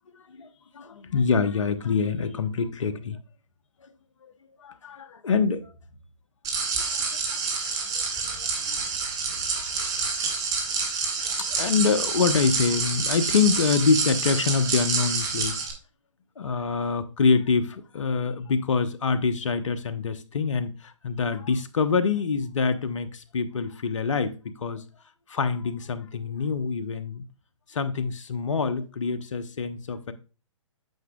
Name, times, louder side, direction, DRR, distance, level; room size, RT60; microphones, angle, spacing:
voice 1, 0.1-3.2 4.6-5.7 6.6-7.2 7.9-8.9 9.3-10.0 11.2-15.7 16.4-24.8 25.3-27.2 27.7-30.1, left 5 dB, 70° left, 0.9 m, -26 dB
sound 1, 6.4-15.7, right 5 dB, 20° right, 1.8 m, -28 dB
9.2 x 6.1 x 2.3 m
figure-of-eight pair, 125°, 17 cm